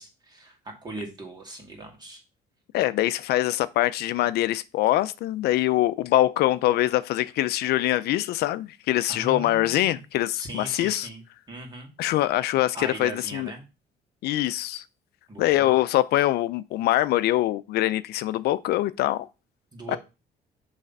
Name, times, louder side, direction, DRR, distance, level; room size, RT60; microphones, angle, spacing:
voice 1, 0.0-2.2 9.1-10.0 10.4-11.9 12.7-13.6 15.3-15.8 19.7-20.0, right 2 dB, 25° right, 2.0 m, -39 dB
voice 2, 2.7-11.1 12.0-13.5 14.2-14.8 15.4-19.3 19.9-20.0, left 15 dB, 75° left, 0.4 m, -24 dB
6.4 x 3.3 x 5.3 m
cardioid pair, 110°, 17 cm